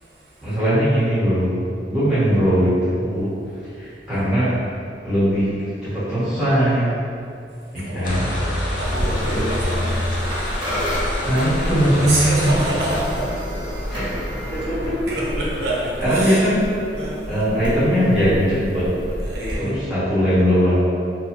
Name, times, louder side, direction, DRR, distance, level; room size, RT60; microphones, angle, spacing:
voice 1, 0.4-1.5 1.9-3.3 3.8-4.6 5.0-7.0 7.7-8.3 9.3-9.7 11.2-12.6 13.9-15.0 16.0-16.7 17.3-18.9 19.6-20.8, equal, 5° right, -14 dB, 1.1 m, -20 dB
voice 2, 7.8-10.1 12.0-13.3 15.1-16.5 17.0-17.1 19.2-19.7, right 1 dB, 70° right, -6 dB, 0.7 m, -27 dB
sound 1, 8.0-13.0, left 1 dB, 50° left, 0.4 m, -27 dB
sound 2, 8.8-19.5, equal, 25° right, 0.7 m, -29 dB
3.0 x 2.1 x 2.9 m, 2.4 s
head